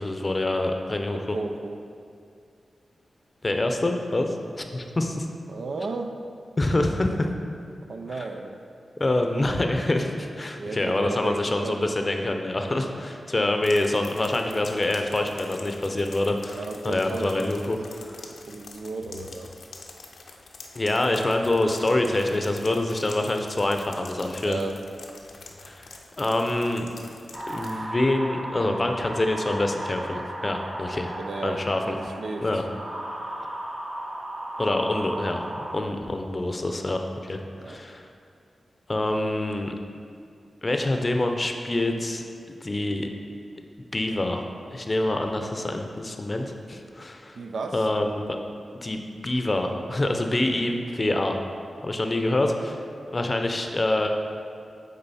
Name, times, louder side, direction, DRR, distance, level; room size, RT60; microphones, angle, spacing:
voice 1, 0.0-1.4 3.4-5.3 6.6-7.3 9.0-18.2 20.8-24.6 25.7-26.9 27.5-31.1 31.4-32.0 32.4-32.7 34.6-35.5 35.7-37.4 37.7-38.1 38.9-39.8 40.6-42.2 42.6-43.1 43.9-44.4 44.7-47.4 47.7-48.4 48.8-51.4 51.8-52.8 53.1-54.1, left 1 dB, 30° left, 4 dB, 0.6 m, -26 dB
voice 2, 1.1-1.8 5.5-6.1 7.9-8.6 10.6-11.9 12.7-12.9 16.6-17.5 18.3-19.5 24.4-24.8 31.2-32.5 37.6-37.8 47.4-47.9, right 3 dB, 80° right, 5 dB, 0.5 m, -34 dB
sound 1, 13.6-27.8, left 3 dB, 80° left, 0.6 m, -46 dB
sound 2, 27.3-35.7, right 1 dB, 45° right, 1.0 m, -35 dB
8.8 x 3.8 x 4.2 m, 2.4 s
cardioid pair, 70°, 0 cm